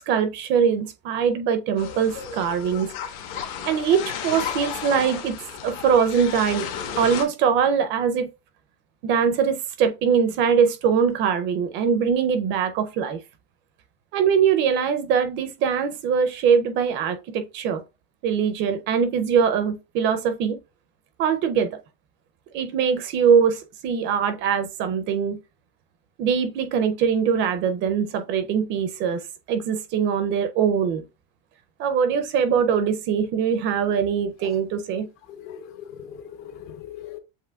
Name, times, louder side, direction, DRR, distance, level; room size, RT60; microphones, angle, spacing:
voice 1, 0.0-2.9 3.6-5.4 5.6-6.7 7.0-8.3 9.0-13.2 14.1-17.8 18.2-20.6 21.2-21.8 22.5-25.4 26.2-31.0 31.8-35.1, right 7 dB, 35° right, 0.4 m, -22 dB
sound 1, 1.8-7.2, left 8 dB, 60° left, 1.1 m, -33 dB
voice 2, 35.3-37.2, left 9 dB, 40° left, 0.6 m, -40 dB
7.4 x 3.0 x 2.2 m
cardioid pair, 165°, 33 cm